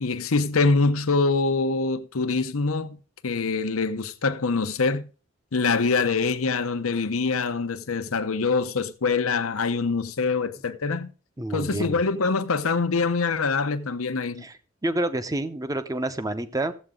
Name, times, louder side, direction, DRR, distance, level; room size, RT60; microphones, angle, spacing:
voice 1, 0.0-3.0 3.2-5.1 5.5-11.1 11.5-14.4, left 4 dB, 85° left, 0.8 m, -24 dB
voice 2, 11.4-12.0 14.4-16.7, right 1 dB, 15° right, 0.7 m, -28 dB
14.5 x 7.8 x 3.7 m
head